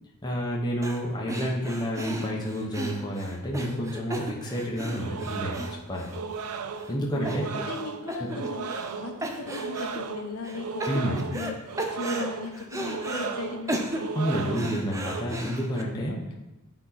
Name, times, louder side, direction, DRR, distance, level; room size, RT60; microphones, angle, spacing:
voice 1, 0.2-6.1 6.9-7.4 8.2-8.3 10.9-11.2 14.1-16.1, equal, 20° left, -2 dB, 1.0 m, -29 dB
sound 1, 0.8-1.0 1.3-6.5 6.8-6.9 7.2-7.8 8.1-8.9 9.2-10.0 10.4-11.5 11.8-13.3 13.7-15.8, right 1 dB, 15° right, 0.5 m, -35 dB
sound 2, 5.0-15.2, right 5 dB, 85° right, 0.4 m, -36 dB
voice 2, 7.1-11.6 11.9-14.2 16.1-16.3, left 2 dB, 80° left, 2 dB, 1.1 m, -37 dB
8.5 x 4.4 x 4.2 m, 1.0 s
head